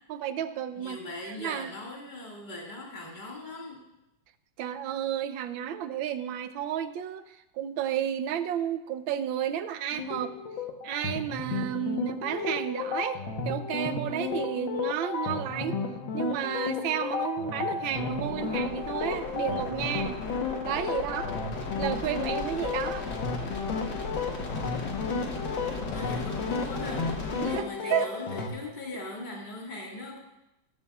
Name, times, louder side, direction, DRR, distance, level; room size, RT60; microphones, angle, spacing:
voice 1, 0.1-1.0 1.2-1.7 4.6-7.2 7.5-10.3 10.8-15.8 16.1-20.2 20.6-21.4 21.8-23.1 27.4-28.1, right 10 dB, 85° right, 11 dB, 1.5 m, -32 dB
voice 2, 0.8-3.9 25.7-30.2, left 1 dB, 25° left, -2 dB, 2.1 m, -40 dB
sound 1, 9.9-28.5, left 4 dB, 85° left, 1.9 m, -33 dB
sound 2, 18.0-27.5, left 3 dB, 65° left, 1.8 m, -37 dB
14.5 x 13.5 x 2.4 m, 0.92 s
omnidirectional pair, 2.1 m